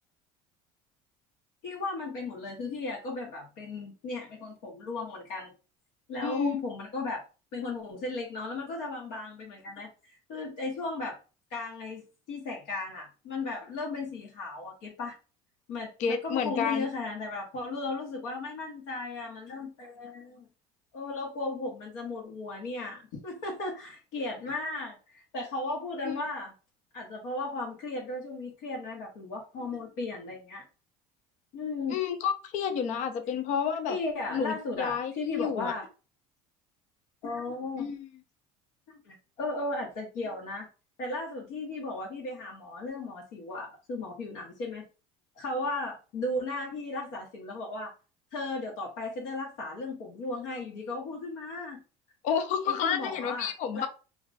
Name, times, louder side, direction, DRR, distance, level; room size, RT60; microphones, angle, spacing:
voice 1, 1.6-5.5 6.1-7.2 7.5-11.2 11.5-15.1 15.7-20.5 20.9-26.5 26.9-30.6 31.5-32.0 33.9-35.9 37.2-37.9 38.9-40.7 41.0-44.8 45.3-47.9 48.3-51.8 52.7-53.9, left 2 dB, 75° left, -2 dB, 1.0 m, -36 dB
voice 2, 6.2-6.6 16.0-16.9 26.0-26.2 31.9-34.0 34.3-35.7 37.8-38.1 52.2-53.9, left 7 dB, 60° left, 8 dB, 0.6 m, -30 dB
2.4 x 2.3 x 3.8 m, 0.33 s
supercardioid pair, 105°, 14 cm